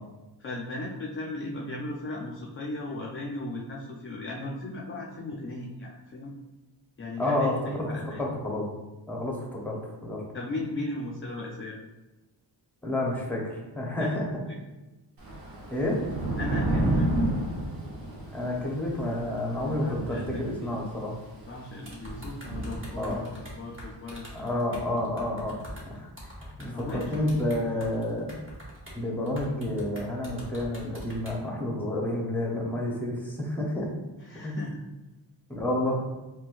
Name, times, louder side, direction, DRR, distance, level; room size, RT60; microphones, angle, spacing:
voice 1, 0.4-6.3 7.0-8.2 10.3-11.8 14.0-14.2 14.5-14.6 16.4-17.1 19.6-20.7 21.5-24.6 26.6-27.8 34.2-34.8, left 2 dB, 30° left, -2 dB, 0.4 m, -37 dB
voice 2, 7.2-7.9 8.2-8.6 9.1-10.2 12.8-14.4 15.7-16.0 18.3-21.2 23.0-23.2 24.3-26.1 26.4-28.4 28.9-33.9 34.4-34.6 35.5-36.0, left 1 dB, 5° left, -2 dB, 0.8 m, -30 dB
Thunder / Rain, 15.2-23.5, right 1 dB, 50° right, 0.9 m, -31 dB
sound 1, 21.9-29.0 29.2-31.4, equal, 30° right, 1.2 m, -43 dB
4.1 x 2.2 x 2.4 m, 1.1 s
cardioid pair, 80°, 44 cm